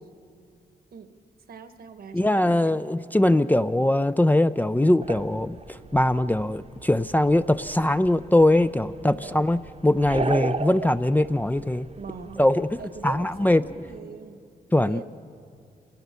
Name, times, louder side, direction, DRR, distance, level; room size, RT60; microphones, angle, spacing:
voice 1, 1.5-2.9 9.2-9.5 12.0-12.4 12.8-14.4 14.8-15.0, right 5 dB, 65° right, 10 dB, 1.3 m, -42 dB
voice 2, 2.1-11.9 12.4-13.6 14.7-15.0, left 1 dB, 10° left, 12 dB, 0.4 m, -22 dB
sound 1, 5.0-14.0, right 4 dB, 40° right, 0.9 m, -37 dB
27.0 x 17.5 x 6.8 m, 2.3 s
cardioid pair, 75°, 17 cm